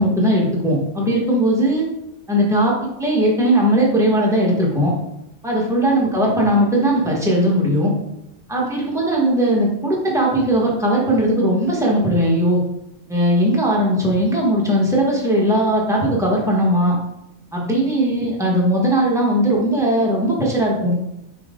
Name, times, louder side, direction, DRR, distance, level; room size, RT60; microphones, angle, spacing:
voice 1, 0.0-1.9 2.3-4.9 5.4-7.9 8.5-12.6 13.1-16.9 17.5-20.9, right 1 dB, ahead, -4 dB, 1.4 m, -18 dB
6.0 x 4.7 x 3.8 m, 0.85 s
omnidirectional pair, 1.4 m